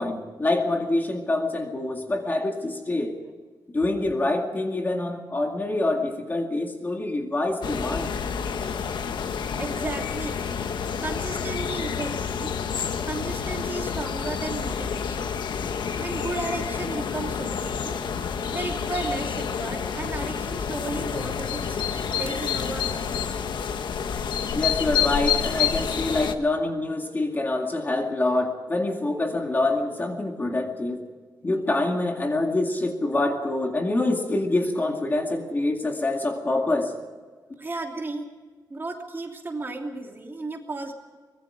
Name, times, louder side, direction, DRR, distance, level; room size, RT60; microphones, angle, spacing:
voice 1, 0.0-3.2 3.7-8.2 24.5-31.0 31.4-36.9, left 2 dB, 25° left, 3 dB, 2.2 m, -26 dB
sound 1, 7.6-26.3, left 7 dB, 90° left, 1.3 m, -29 dB
voice 2, 9.6-10.4 11.0-12.5 13.0-15.3 16.0-18.1 18.5-21.8 22.2-23.2 37.6-38.3 38.7-40.9, right 3 dB, 30° right, 2 dB, 2.9 m, -34 dB
24.0 x 21.0 x 5.0 m, 1.4 s
wide cardioid pair, 155°, 8 cm